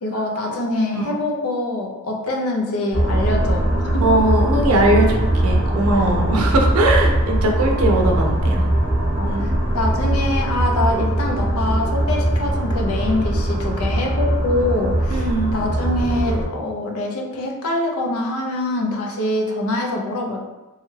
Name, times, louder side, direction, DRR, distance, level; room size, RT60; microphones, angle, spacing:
voice 1, 0.0-4.0 9.2-20.4, left 2 dB, 70° left, 1 dB, 0.5 m, -24 dB
sound 1, 2.9-16.4, right 1 dB, 35° right, 0.8 m, -20 dB
voice 2, 4.0-8.6 9.3-9.4 15.1-15.6, right 1 dB, 70° right, 1 dB, 0.5 m, -20 dB
3.1 x 2.3 x 3.1 m, 1.1 s
head